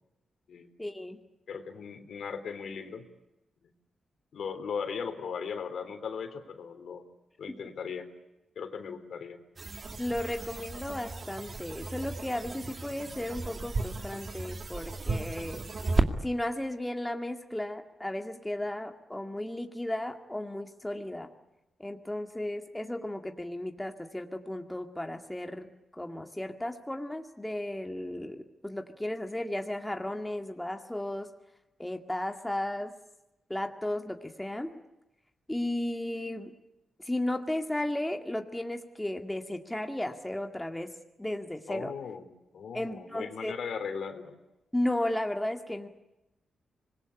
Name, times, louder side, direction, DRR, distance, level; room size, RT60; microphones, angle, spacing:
voice 1, 0.8-1.2 7.5-7.6 10.0-15.6 16.2-21.3 21.8-25.7 26.0-31.3 31.8-32.9 33.5-34.7 35.5-36.5 37.0-40.9 41.2-41.9 42.7-43.5 44.7-45.9, left 1 dB, 10° left, 5 dB, 2.0 m, -34 dB
voice 2, 1.5-3.1 4.3-7.0 7.4-8.1 8.5-9.4 41.7-42.2 42.5-44.4, left 6 dB, 70° left, 8 dB, 3.5 m, -38 dB
sound 1, 9.6-16.1, right 3 dB, 40° right, 2.2 m, -34 dB
25.5 x 21.0 x 9.8 m, 0.96 s
cardioid pair, 100°, 0 cm